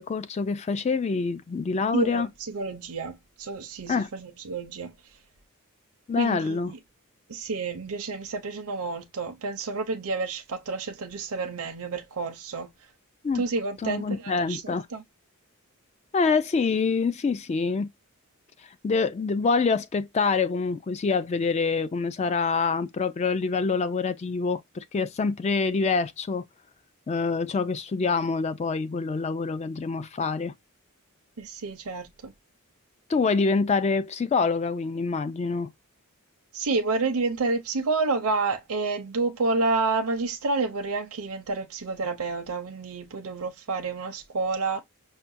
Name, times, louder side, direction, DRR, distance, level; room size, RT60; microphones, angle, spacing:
voice 1, 0.0-2.3 3.9-4.1 6.1-6.7 13.2-13.4 13.8-14.9 16.1-17.9 18.8-26.4 27.1-30.5 33.1-35.7, left 4 dB, 30° left, 0.3 m, -26 dB
voice 2, 1.9-5.0 6.2-6.8 7.3-12.7 13.3-15.0 31.4-32.3 36.5-44.8, right 3 dB, 75° right, 0.6 m, -29 dB
5.7 x 2.1 x 2.5 m
head